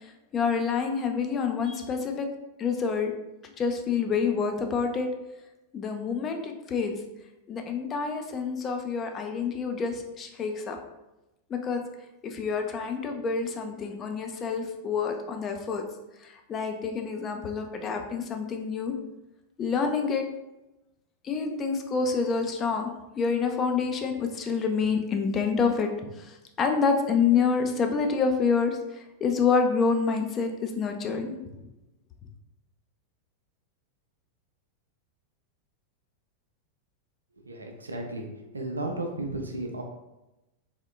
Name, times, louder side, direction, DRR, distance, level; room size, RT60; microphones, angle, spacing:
voice 1, 0.0-2.3 2.6-3.1 3.6-5.1 5.7-7.0 7.5-10.8 11.5-11.8 12.2-15.8 16.2-19.0 19.6-20.2 21.2-25.9 26.2-31.4, left 5 dB, 25° left, 4 dB, 0.5 m, -27 dB
voice 2, 37.4-39.8, right 2 dB, 80° right, 2 dB, 0.5 m, -34 dB
3.6 x 3.5 x 2.3 m, 0.97 s
figure-of-eight pair, 90°, 0 cm